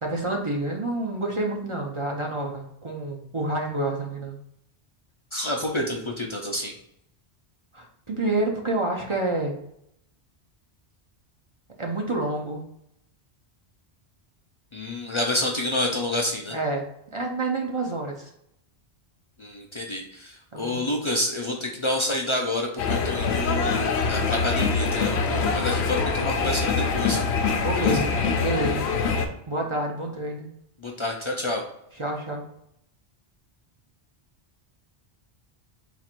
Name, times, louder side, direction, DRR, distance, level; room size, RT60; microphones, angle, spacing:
voice 1, 0.0-4.4 7.7-9.5 11.8-12.6 16.5-16.9 17.1-18.3 20.5-20.8 27.6-28.1 28.4-28.8 29.5-30.5 32.0-32.4, right 2 dB, 35° right, 0 dB, 0.6 m, -28 dB
voice 2, 5.3-6.7 14.7-16.6 19.4-27.2 27.7-28.0 30.8-31.6, left 1 dB, 40° left, 0 dB, 0.4 m, -28 dB
sound 1, 22.8-29.3, left 4 dB, 90° left, 0.9 m, -24 dB
4.1 x 2.5 x 4.3 m, 0.76 s
omnidirectional pair, 1.1 m